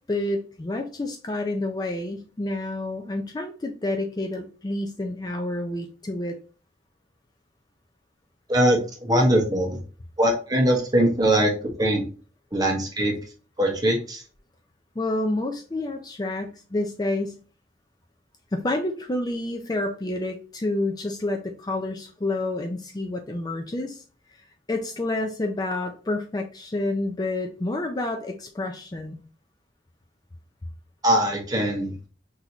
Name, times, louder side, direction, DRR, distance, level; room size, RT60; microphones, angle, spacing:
voice 1, 0.1-6.3 15.0-17.4 18.5-24.0 24.3-29.2, left 2 dB, 20° left, 3 dB, 0.4 m, -29 dB
voice 2, 8.5-9.8 10.2-11.5 11.8-12.0 12.5-13.2 13.6-14.2 31.0-31.9, right 1 dB, 20° right, 1 dB, 1.0 m, -21 dB
6.0 x 2.7 x 2.9 m, 0.38 s
head